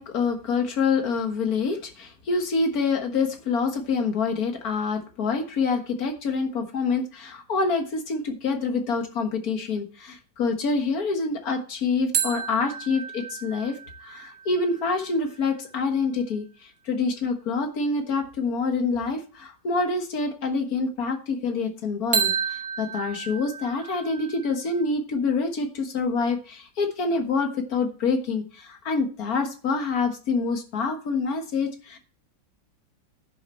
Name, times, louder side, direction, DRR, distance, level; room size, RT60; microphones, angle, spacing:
voice 1, 0.0-32.0, left 4 dB, 55° left, 5 dB, 1.8 m, -26 dB
sound 1, 12.1-15.7 22.1-24.9, right 7 dB, 40° right, 1.7 m, -31 dB
10.5 x 6.7 x 4.3 m, 0.37 s
omnidirectional pair, 2.0 m